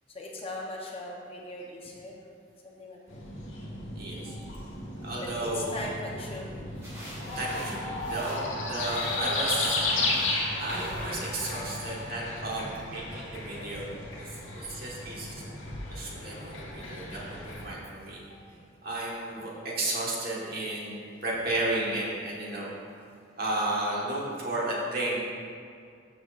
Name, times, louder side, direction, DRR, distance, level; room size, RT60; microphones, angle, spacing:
voice 1, 0.1-2.2 2.6-3.2 5.2-6.7 9.9-10.6 16.2-16.5, left 2 dB, 30° left, -2 dB, 0.9 m, -40 dB
sound 1, 3.1-17.7, left 2 dB, 90° left, 1.6 m, -34 dB
voice 2, 4.0-4.3 5.0-5.8 7.3-9.8 10.6-18.4 18.8-22.7 23.4-25.2, right 2 dB, 50° right, -4 dB, 1.5 m, -33 dB
sound 2, 6.8-12.1, equal, 15° right, 1.9 m, -47 dB
13.0 x 5.6 x 2.5 m, 2.3 s
head